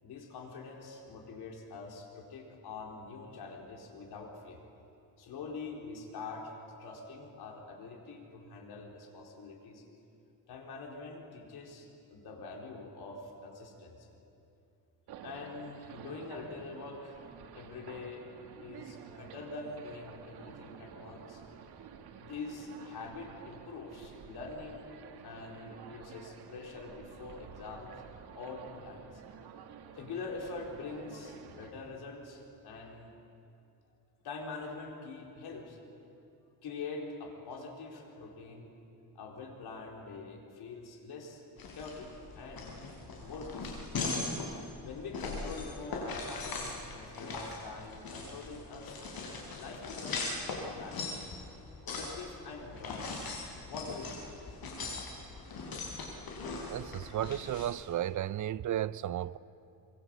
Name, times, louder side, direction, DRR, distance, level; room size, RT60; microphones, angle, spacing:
voice 1, 0.0-4.6 5.2-9.8 10.5-14.1 15.2-17.2 17.5-18.3 18.6-21.4 21.8-24.9 25.2-28.0 28.3-29.2 29.9-33.1 34.2-35.8 36.6-38.7 39.1-41.4 41.7-42.8 43.2-43.9 44.8-49.0 49.6-51.1 51.9-53.2 53.5-54.3, left 3 dB, 90° left, 4.4 m, -44 dB
sound 1, 15.1-31.7, right 7 dB, 90° right, 2.0 m, -51 dB
sound 2, 41.6-57.7, left 3 dB, 70° left, 6.8 m, -40 dB
voice 2, 56.7-59.4, right 11 dB, 50° right, 0.6 m, -34 dB
27.0 x 24.0 x 7.8 m
cardioid pair, 115°, 38 cm